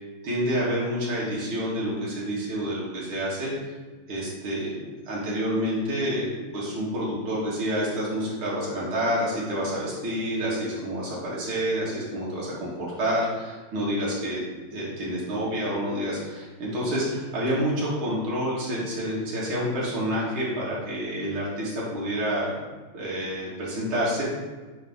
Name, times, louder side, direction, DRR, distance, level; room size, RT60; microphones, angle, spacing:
voice 1, 0.2-3.5 4.1-6.3 6.5-14.4 14.7-22.5 22.9-24.2, equal, 80° right, -6 dB, 2.7 m, -28 dB
9.0 x 4.2 x 3.7 m, 1.3 s
omnidirectional pair, 2.3 m